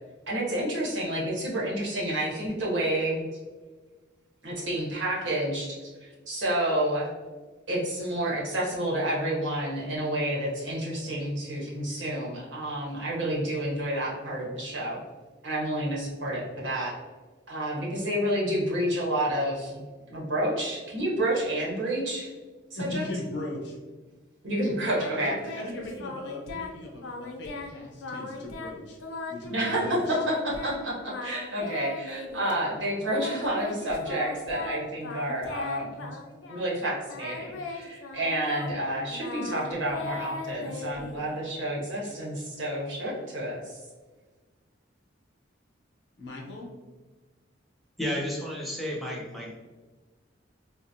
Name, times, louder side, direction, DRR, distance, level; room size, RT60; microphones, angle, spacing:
voice 1, 0.3-3.2 4.4-5.8 6.3-7.1 7.7-15.0 15.4-16.9 17.5-19.8 20.1-22.3 22.8-23.0 24.4-25.3 29.5-36.2 36.5-43.8, right 1 dB, 75° right, -4 dB, 1.1 m, -29 dB
voice 2, 22.7-23.8 25.1-30.2 46.2-46.7, left 2 dB, 60° left, -2 dB, 0.8 m, -38 dB
Singing, 24.9-26.8 27.0-27.7 28.0-30.8 31.1-32.5 33.1-36.7 37.0-41.5, left 3 dB, 85° left, 0.5 m, -38 dB
voice 3, 48.0-49.6, left 1 dB, ahead, -3 dB, 0.5 m, -32 dB
3.8 x 2.0 x 2.6 m, 1.3 s
head